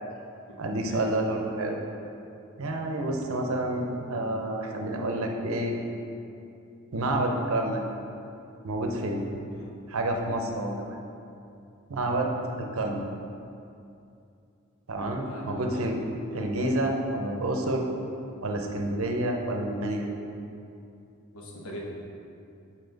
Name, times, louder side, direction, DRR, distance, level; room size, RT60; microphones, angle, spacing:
voice 1, 0.6-1.8 2.6-5.7 6.9-7.8 8.6-9.3 9.9-11.0 11.9-12.3 12.6-13.0 14.9-16.0 16.3-17.9 18.4-20.1, right 1 dB, 70° right, 2 dB, 0.7 m, -29 dB
voice 2, 15.3-15.9 16.3-16.4 21.3-21.9, equal, 85° left, -2 dB, 1.1 m, -41 dB
7.0 x 4.2 x 3.9 m, 2.6 s
head